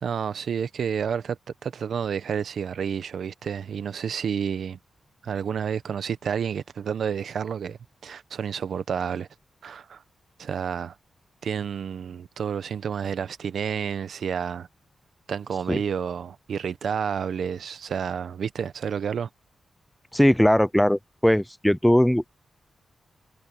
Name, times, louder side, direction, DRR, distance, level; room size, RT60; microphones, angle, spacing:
voice 1, 0.0-4.8 5.2-9.3 9.6-10.0 10.4-10.9 11.4-14.7 15.3-19.3, right 7 dB, 65° right, 0.9 m, -30 dB
voice 2, 20.1-22.3, equal, 5° left, 0.4 m, -20 dB
wide cardioid pair, 180°, 0 cm